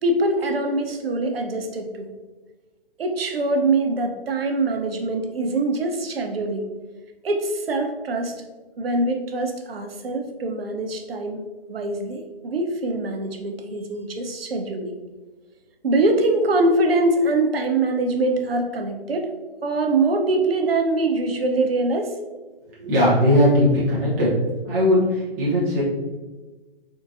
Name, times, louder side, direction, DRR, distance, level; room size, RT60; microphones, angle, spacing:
voice 1, 0.0-2.1 3.0-6.7 7.2-8.4 8.8-11.4 11.7-15.0 15.8-19.3 19.6-22.1, right 2 dB, 75° right, 4 dB, 0.6 m, -23 dB
voice 2, 22.8-24.3 24.6-25.8, left 1 dB, 10° right, -8 dB, 0.4 m, -19 dB
3.6 x 2.6 x 2.5 m, 1.2 s
figure-of-eight pair, 135°, 30 cm